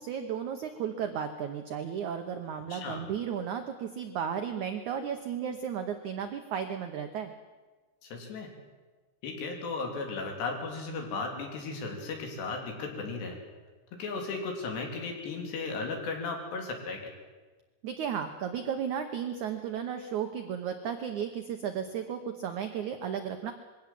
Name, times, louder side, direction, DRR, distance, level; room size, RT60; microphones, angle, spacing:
voice 1, 0.0-7.3 17.8-23.5, right 8 dB, 85° right, 7 dB, 1.7 m, -34 dB
voice 2, 8.0-8.5 9.2-13.4 14.0-17.1, left 4 dB, 75° left, 2 dB, 5.3 m, -35 dB
22.0 x 17.0 x 7.6 m, 1.3 s
omnidirectional pair, 5.0 m